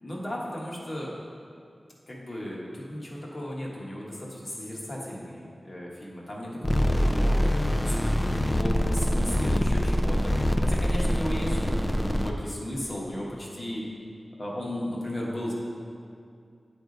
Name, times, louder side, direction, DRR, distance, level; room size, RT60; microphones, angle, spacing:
voice 1, 0.0-1.1 2.1-7.4 7.8-10.3 10.6-13.8 14.4-15.5, left 1 dB, 45° left, -4 dB, 1.3 m, -35 dB
sound 1, 6.6-12.3, equal, 20° left, 0.4 m, -24 dB
9.6 x 3.5 x 4.0 m, 2.4 s
wide cardioid pair, 85°, 0 cm